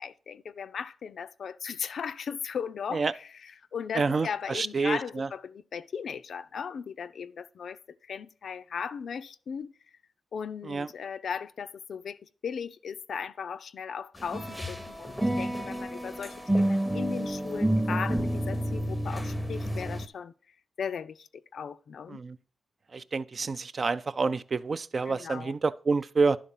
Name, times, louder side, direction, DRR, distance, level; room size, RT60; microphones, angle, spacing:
voice 1, 0.0-7.8 8.1-9.7 10.3-20.3 20.8-22.2 25.1-25.5, left 6 dB, 65° left, 0.4 m, -37 dB
voice 2, 3.9-5.3 10.6-10.9 22.1-22.4 22.9-26.4, right 4 dB, 40° right, 0.4 m, -28 dB
sound 1, 14.2-20.1, right 1 dB, ahead, 0.7 m, -29 dB
11.0 x 3.7 x 5.5 m
cardioid pair, 105°, 0 cm